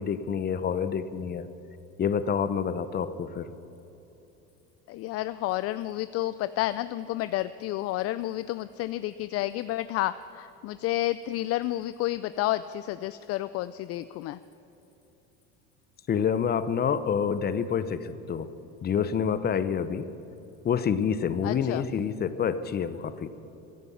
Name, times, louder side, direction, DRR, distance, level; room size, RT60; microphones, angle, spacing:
voice 1, 0.0-1.5 2.0-3.5 16.1-18.5 18.8-20.1 20.6-23.3, left 7 dB, 30° left, 13 dB, 0.8 m, -27 dB
voice 2, 4.9-14.4 21.4-21.8, left 15 dB, 50° left, 14 dB, 0.5 m, -30 dB
15.0 x 11.0 x 8.6 m, 3.0 s
supercardioid pair, 110°, 31 cm